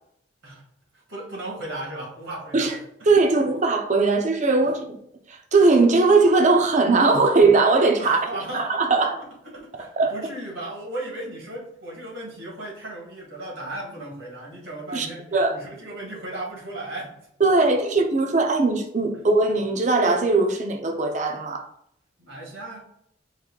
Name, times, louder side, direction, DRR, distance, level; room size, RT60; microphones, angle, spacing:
voice 1, 0.9-2.8 8.0-8.7 9.4-17.1 17.6-17.7 22.2-22.8, right 1 dB, 80° right, 1.8 m, -36 dB
voice 2, 3.1-5.0 5.3-8.2 8.5-9.2 9.8-10.1 14.9-15.6 17.4-21.6, right 3 dB, 40° right, 0.6 m, -20 dB
4.7 x 2.7 x 3.7 m
head